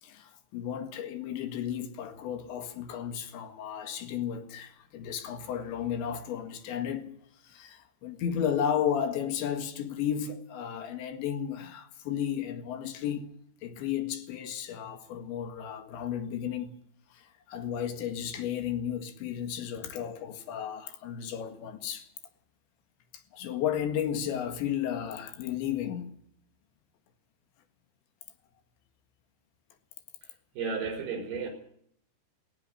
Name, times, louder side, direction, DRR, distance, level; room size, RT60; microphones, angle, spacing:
voice 1, 0.0-7.2 7.4-13.3 13.6-16.8 17.1-22.1 23.3-26.2, left 9 dB, 75° left, 4.1 m, -33 dB
voice 2, 30.6-31.5, right 5 dB, 60° right, 6.8 m, -33 dB
18.0 x 17.5 x 9.8 m
omnidirectional pair, 5.3 m